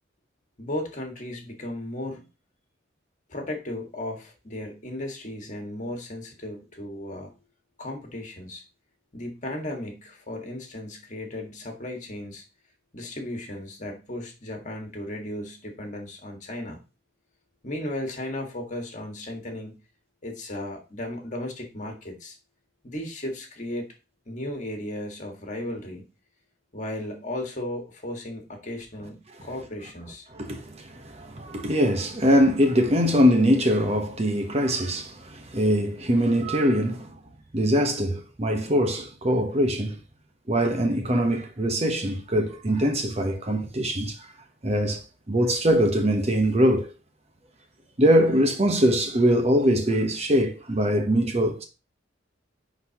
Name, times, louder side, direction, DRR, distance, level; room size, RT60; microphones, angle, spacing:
voice 1, 0.6-2.3 3.3-7.3 7.8-8.6 9.1-12.4 12.9-16.8 17.6-19.8 20.2-22.4 22.8-23.9 24.2-26.0 26.7-30.3, left 1 dB, 40° left, 1.7 m, -35 dB
voice 2, 30.4-37.2 37.5-40.0 40.5-44.2 44.6-46.9 48.0-51.6, equal, 35° right, 1.0 m, -22 dB
10.0 x 4.1 x 2.9 m
head